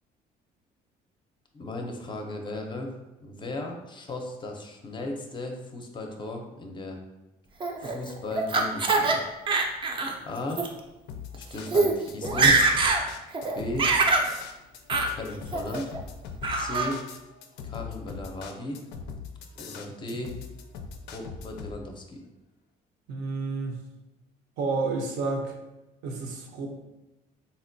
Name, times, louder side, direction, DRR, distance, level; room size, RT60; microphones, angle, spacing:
voice 1, 1.5-2.9 3.2-7.0 7.8-9.2 10.2-10.6 11.5-12.6 13.5-13.9 15.1-15.9 16.5-17.0 17.6-18.8 19.6-20.3 21.1-22.2, left 2 dB, 30° left, 3 dB, 0.5 m, -36 dB
Laughter, 7.6-9.2 9.5-10.1 10.5-10.7 11.3-11.4 11.7-11.9 12.2-13.0 13.3-14.3 14.9-15.1 15.5-16.0 16.4-16.9, right 3 dB, 30° right, 0.4 m, -23 dB
sound 1, 11.1-21.8, left 6 dB, 85° left, 0.4 m, -40 dB
voice 2, 23.1-23.8 24.6-25.5 26.0-26.7, right 3 dB, 85° right, 2 dB, 0.6 m, -30 dB
3.9 x 2.1 x 2.6 m, 1.0 s
cardioid pair, 110°, 17 cm